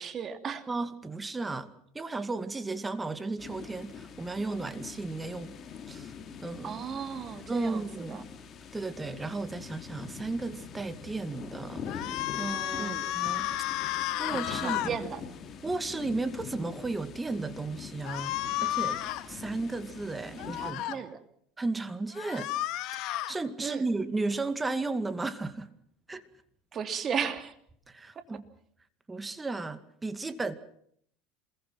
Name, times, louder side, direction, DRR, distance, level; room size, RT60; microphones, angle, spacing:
voice 1, 0.0-0.6 6.6-8.2 12.8-13.1 14.3-15.2 20.4-21.2 23.6-23.8 26.7-27.5, right 7 dB, 35° right, 9 dB, 3.1 m, -35 dB
voice 2, 0.7-5.6 5.9-6.1 6.4-6.9 7.5-8.3 8.7-13.5 13.8-15.1 15.6-19.0 19.3-21.1 21.6-22.5 23.1-25.7 26.1-26.2 27.9-28.4 29.1-30.5, right 3 dB, 15° right, 12 dB, 2.2 m, -34 dB
sound 1, 3.4-20.7, left 6 dB, 35° left, 3.2 m, -44 dB
sound 2, 11.9-14.9 18.0-19.2 20.4-21.0 22.1-23.3, left 14 dB, 60° left, 2.0 m, -32 dB
27.5 x 22.0 x 6.0 m, 0.66 s
supercardioid pair, 110°, 0 cm